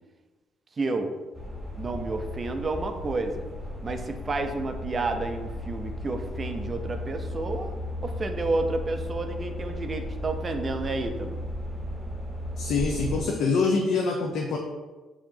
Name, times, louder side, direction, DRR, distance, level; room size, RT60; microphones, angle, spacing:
voice 1, 0.8-1.1 1.8-3.5 3.8-7.7 8.0-11.4, right 3 dB, 30° right, 6 dB, 0.3 m, -30 dB
sound 1, 1.3-13.2, left 1 dB, 10° right, 0.8 m, -35 dB
voice 2, 12.6-14.6, left 4 dB, 75° left, 0 dB, 0.5 m, -25 dB
4.6 x 2.8 x 2.6 m, 1.2 s
cardioid pair, 130°, 0 cm